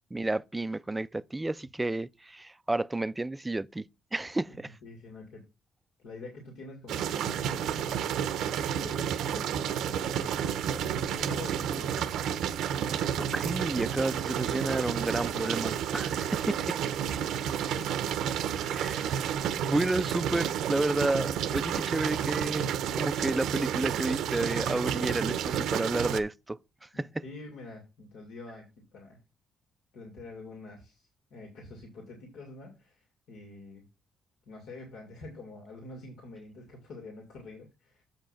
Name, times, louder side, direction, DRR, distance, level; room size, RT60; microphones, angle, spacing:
voice 1, 0.1-3.8 4.1-4.7 13.2-16.8 18.7-19.2 19.7-27.1, right 2 dB, 15° right, 0.4 m, -31 dB
voice 2, 4.5-5.4 6.0-12.2 17.6-18.3 26.9-28.7 28.9-29.2 29.9-33.8 34.5-38.0, left 3 dB, 85° left, 2.5 m, -46 dB
sound 1, 6.9-26.2, right 9 dB, 85° right, 0.7 m, -31 dB
7.3 x 5.3 x 5.7 m
cardioid pair, 90°, 0 cm